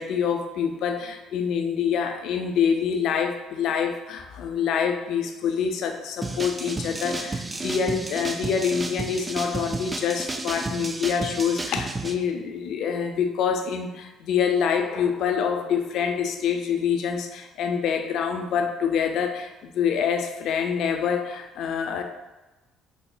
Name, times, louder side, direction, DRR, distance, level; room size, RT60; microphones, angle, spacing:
voice 1, 0.0-22.0, left 7 dB, 65° left, 4 dB, 0.4 m, -26 dB
sound 1, 6.2-12.1, right 2 dB, 25° right, 0.3 m, -32 dB
4.5 x 2.8 x 2.2 m, 1.1 s
hypercardioid pair, 55°, 0 cm